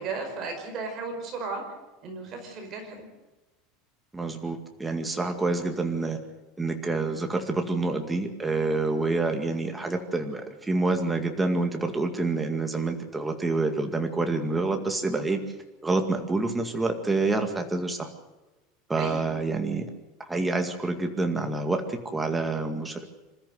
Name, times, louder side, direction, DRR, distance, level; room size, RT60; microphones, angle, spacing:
voice 1, 0.0-1.6 2.0-3.1 19.0-19.3, right 4 dB, 30° right, 3 dB, 5.2 m, -35 dB
voice 2, 4.1-6.2 6.6-15.4 15.8-18.1 18.9-19.9 20.3-23.1, right 3 dB, 10° right, 5 dB, 2.1 m, -27 dB
26.5 x 13.5 x 7.7 m, 1.1 s
supercardioid pair, 165°, 0 cm